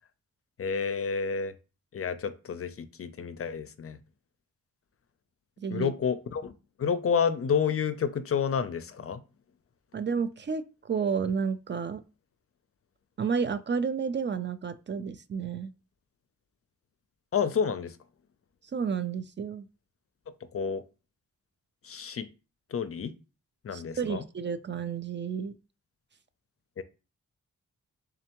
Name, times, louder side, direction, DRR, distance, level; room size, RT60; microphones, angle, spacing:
voice 1, 0.6-1.5 1.9-4.0 5.7-6.5 6.8-9.2 17.3-18.0 20.5-20.8 21.8-22.3 22.7-23.1 23.6-24.2 26.8-26.9, left 6 dB, 50° left, 0.5 m, -29 dB
voice 2, 5.6-5.9 9.9-12.0 13.2-15.7 18.7-19.7 23.7-25.5, right 6 dB, 40° right, 0.4 m, -31 dB
3.7 x 3.3 x 2.9 m
cardioid pair, 65°, 30 cm